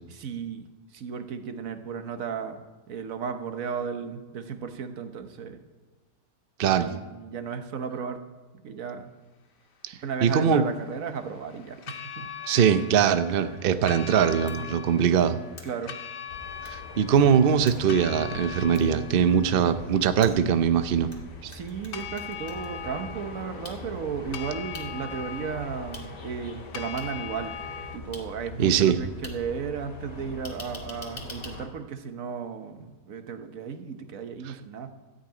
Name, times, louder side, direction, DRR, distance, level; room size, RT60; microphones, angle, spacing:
voice 1, 0.1-2.6 2.9-5.6 6.8-8.2 8.6-9.1 10.0-12.3 15.6-16.0 21.5-27.5 27.9-34.9, right 6 dB, 55° right, 8 dB, 1.2 m, -34 dB
voice 2, 9.9-10.7 12.5-15.4 16.6-21.1 21.4-21.5 28.6-29.0, right 7 dB, 85° right, 11 dB, 0.5 m, -22 dB
sound 1, 10.0-28.0, left 8 dB, 80° left, 1.6 m, -42 dB
sound 2, 14.5-14.6 15.6-15.7 16.6-16.7 17.7-17.8 18.7-18.8 20.2-21.2 21.5-22.7 23.6-23.8 24.7-24.8 25.9-26.0 27.0-27.1 28.1-28.2 29.2-29.3 30.4-31.5, left 2 dB, 25° left, 2.0 m, -43 dB
sound 3, 16.3-31.7, left 2 dB, 50° left, 1.9 m, -43 dB
13.0 x 5.6 x 8.8 m, 1.3 s
omnidirectional pair, 1.8 m